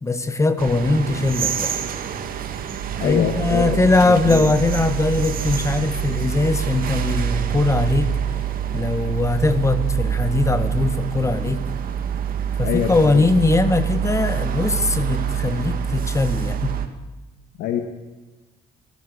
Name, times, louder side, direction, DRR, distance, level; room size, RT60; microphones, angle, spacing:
voice 1, 0.0-1.7 3.0-8.1 8.7-11.6 12.6-16.8, left 3 dB, 15° left, 10 dB, 1.9 m, -20 dB
sound 1, 0.6-16.9, right 9 dB, 60° right, 2.3 m, -26 dB
voice 2, 3.0-4.5 12.6-13.3 17.6-17.8, left 9 dB, 80° left, 5 dB, 2.1 m, -25 dB
27.0 x 14.5 x 6.7 m, 1.1 s
cardioid pair, 110°, 17 cm